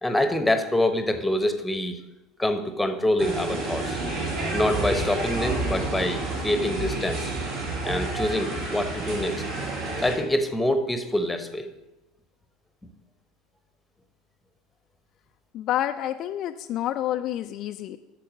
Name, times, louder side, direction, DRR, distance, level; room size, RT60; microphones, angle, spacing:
voice 1, 0.0-2.0 2.4-4.0 4.5-7.3 7.8-9.4 10.0-11.7, left 1 dB, 10° left, 9 dB, 1.0 m, -25 dB
sound 1, 3.2-10.1, right 2 dB, 65° right, 2.8 m, -30 dB
voice 2, 15.5-18.0, left 12 dB, 50° left, 8 dB, 0.4 m, -28 dB
8.7 x 6.7 x 5.1 m, 1.0 s
figure-of-eight pair, 70°, 0 cm